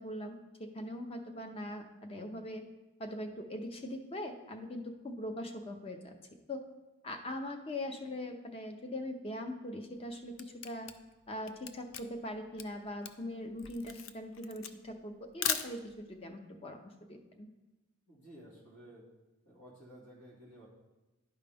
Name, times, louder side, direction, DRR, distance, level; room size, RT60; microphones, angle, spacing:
voice 1, 0.0-2.6 3.0-6.6 7.0-10.9 11.3-16.8 17.1-17.5, left 1 dB, 25° left, 5 dB, 0.7 m, -41 dB
Camera, 9.9-16.2, left 8 dB, 65° left, 0.4 m, -39 dB
voice 2, 18.1-19.0 19.4-20.7, equal, 80° left, -5 dB, 2.1 m, -54 dB
11.0 x 4.8 x 3.4 m, 1.1 s
head